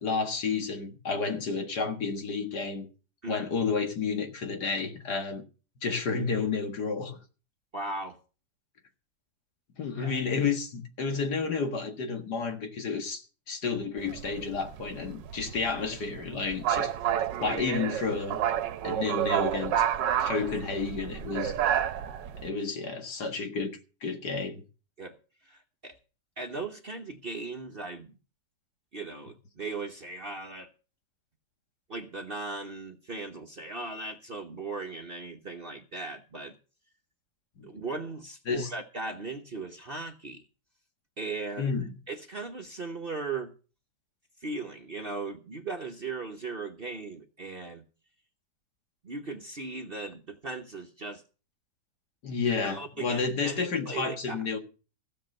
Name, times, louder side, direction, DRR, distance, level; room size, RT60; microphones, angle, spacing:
voice 1, 0.0-2.9 3.3-5.4 5.8-7.2 9.8-16.9 17.4-18.4 18.8-19.7 20.2-21.6 22.4-24.6 37.6-37.7 38.5-38.7 41.6-41.9 52.2-54.6, left 4 dB, 65° left, 2.3 m, -31 dB
voice 2, 7.7-8.2 10.0-10.2 25.0-25.2 25.4-26.0 26.4-28.1 28.9-30.7 31.9-36.6 37.6-40.4 41.2-41.7 42.1-43.5 44.4-47.8 49.0-51.2 52.6-54.4, right 3 dB, 40° right, 1.0 m, -38 dB
sound 1, 14.0-22.5, right 10 dB, 80° right, 1.5 m, -30 dB
16.0 x 6.9 x 6.5 m
omnidirectional pair, 1.9 m